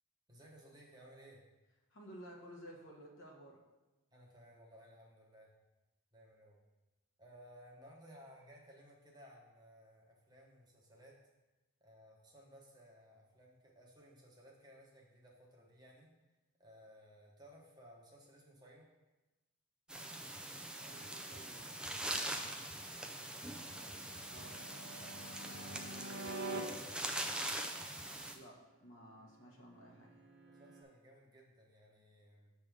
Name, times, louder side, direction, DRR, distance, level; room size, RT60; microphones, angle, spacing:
voice 1, 0.3-1.4 4.1-5.5 6.1-6.6 7.2-11.2 11.8-16.1 16.6-18.9 23.2-24.2 25.0-27.3 30.5-32.5, equal, 20° right, -2 dB, 1.0 m, -59 dB
voice 2, 1.9-3.6 20.9-22.5 24.3-24.6 28.3-30.1, equal, 65° left, -2 dB, 1.3 m, -55 dB
sound 1, 19.9-28.3, right 1 dB, 5° right, 0.4 m, -43 dB
sound 2, 23.8-26.6 29.6-30.8, right 2 dB, 50° right, 0.8 m, -47 dB
6.7 x 3.5 x 6.1 m, 1.1 s
head